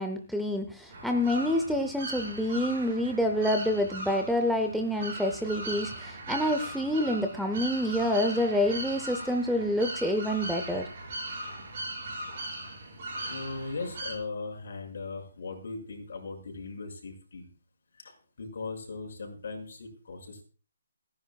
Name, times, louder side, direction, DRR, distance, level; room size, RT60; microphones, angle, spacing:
voice 1, 0.0-10.9, left 1 dB, ahead, 5 dB, 0.5 m, -27 dB
sound 1, 0.9-14.2, right 1 dB, 35° right, 6.5 m, -39 dB
voice 2, 13.3-17.5 18.0-20.4, left 3 dB, 55° left, 1 dB, 5.7 m, -39 dB
28.5 x 10.5 x 2.3 m, 0.35 s
hypercardioid pair, 175°, 0 cm